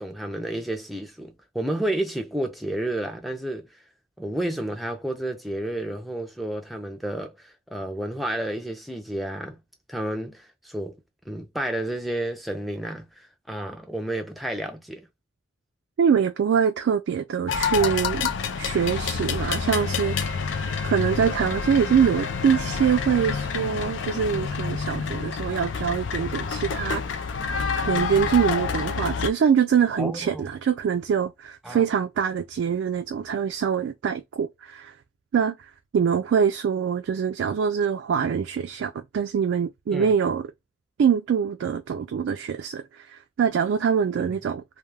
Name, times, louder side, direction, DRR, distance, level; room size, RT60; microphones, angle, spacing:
voice 1, 0.0-3.7 4.2-9.6 9.9-11.0 11.3-15.1 30.0-30.5 31.6-31.8 39.9-40.2 44.1-44.3, right 1 dB, ahead, 0.4 m, -31 dB
voice 2, 16.0-18.3 18.6-20.2 20.8-27.0 27.8-34.9 35.3-40.5 41.0-44.6, right 7 dB, 85° right, 0.3 m, -24 dB
sound 1, 17.5-29.3, left 5 dB, 85° left, 0.4 m, -28 dB
2.2 x 2.2 x 3.2 m
head